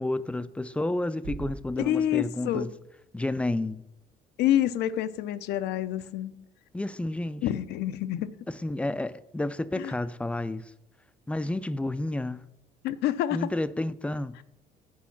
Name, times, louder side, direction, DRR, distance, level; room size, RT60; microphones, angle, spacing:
voice 1, 0.0-2.7 3.1-3.8 6.7-7.4 8.5-10.6 11.3-12.4 13.3-14.4, left 2 dB, 5° left, 0.3 m, -30 dB
sound 1, 1.2-3.2, right 4 dB, 80° right, 1.1 m, -43 dB
voice 2, 1.8-2.7 4.4-6.4 7.4-8.3 9.8-9.9 12.8-13.5, left 12 dB, 80° left, 0.5 m, -27 dB
8.5 x 4.7 x 5.8 m
cardioid pair, 110°, 17 cm